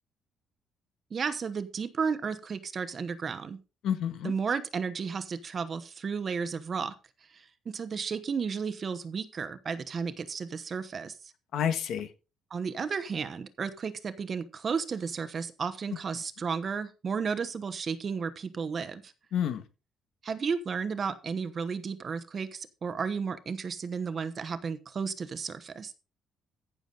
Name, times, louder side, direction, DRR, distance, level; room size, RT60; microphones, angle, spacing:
voice 1, 1.1-3.6 4.2-6.9 7.3-11.1 12.5-19.1 20.2-25.9, right 5 dB, 30° right, 12 dB, 1.0 m, -33 dB
voice 2, 3.8-4.3 11.5-12.1 19.3-19.6, left 9 dB, 60° left, 9 dB, 1.7 m, -29 dB
15.0 x 7.0 x 3.9 m, 0.30 s
cardioid pair, 170°, 0 cm